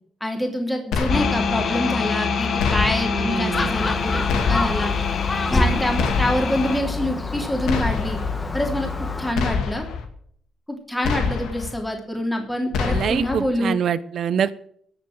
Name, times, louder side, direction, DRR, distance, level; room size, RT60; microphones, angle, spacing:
voice 1, 0.2-4.9 5.5-8.2 8.5-8.9 9.2-9.9 10.7-13.8, left 1 dB, 5° left, 2 dB, 3.1 m, -26 dB
sound 1, 0.9-1.6 2.6-3.3 4.3-5.0 6.0-6.7 7.7-8.4 9.3-10.0 11.0-11.7 12.7-13.4, left 5 dB, 80° left, 2.4 m, -26 dB
sound 2, 1.1-6.8, left 5 dB, 55° left, 1.7 m, -26 dB
voice 2, 3.1-3.7 12.9-14.7, right 8 dB, 60° right, 16 dB, 0.9 m, -25 dB
Gull seagull, 3.5-9.3, left 3 dB, 25° left, 1.7 m, -26 dB
18.0 x 7.3 x 7.7 m, 0.64 s
cardioid pair, 90°, 0 cm